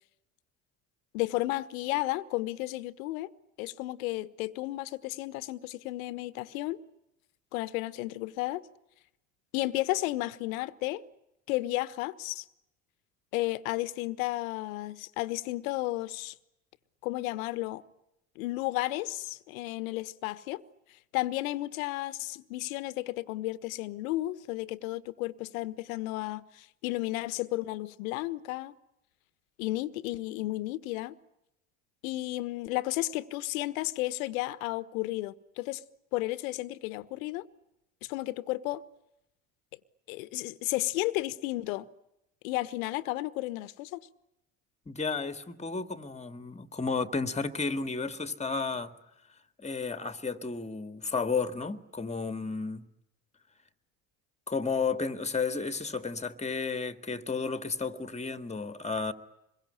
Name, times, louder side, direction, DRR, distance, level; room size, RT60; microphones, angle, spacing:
voice 1, 1.1-3.3 3.6-6.8 7.5-8.7 9.5-11.0 11.5-12.4 13.3-16.3 17.0-17.8 18.4-20.6 21.1-28.7 29.6-31.1 32.0-35.8 36.1-37.5 38.0-38.8 40.1-41.9 42.4-44.0, left 18 dB, 70° left, 1.3 m, -33 dB
voice 2, 44.9-48.9 49.6-52.8 54.5-59.1, left 4 dB, 15° left, 2.1 m, -32 dB
26.0 x 22.5 x 10.0 m
hypercardioid pair, 65°, 42 cm